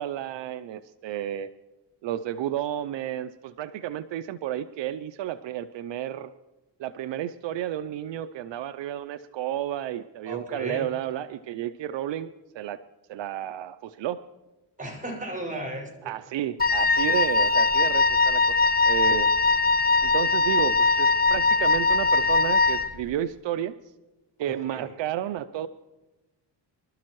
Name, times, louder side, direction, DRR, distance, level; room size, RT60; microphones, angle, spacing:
voice 1, 0.0-1.5 2.0-6.3 6.8-12.8 13.1-14.2 16.1-19.3 20.0-23.7 24.4-25.7, right 11 dB, 75° right, 13 dB, 0.6 m, -32 dB
voice 2, 10.2-10.8 14.8-16.1 24.5-24.9, right 1 dB, 15° right, 0 dB, 5.8 m, -35 dB
Wind instrument woodwind instrument, 16.6-23.0, left 3 dB, 20° left, 0.8 m, -21 dB
25.0 x 13.0 x 3.1 m, 1.1 s
cardioid pair, 85°, 45 cm